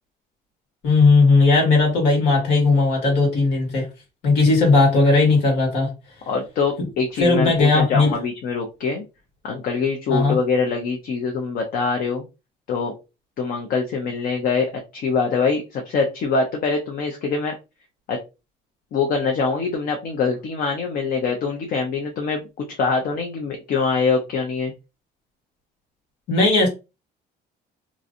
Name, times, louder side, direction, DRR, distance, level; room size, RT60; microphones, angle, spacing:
voice 1, 0.8-3.9 4.2-5.9 6.8-6.9 7.2-8.2 10.1-10.4 26.3-26.7, left 3 dB, 80° left, 1.6 m, -17 dB
voice 2, 6.3-9.0 9.4-12.2 12.7-12.9 13.4-17.5 18.1-18.2 18.9-24.7, left 4 dB, 55° left, 0.7 m, -24 dB
3.0 x 2.6 x 2.5 m
cardioid pair, 135°, 18 cm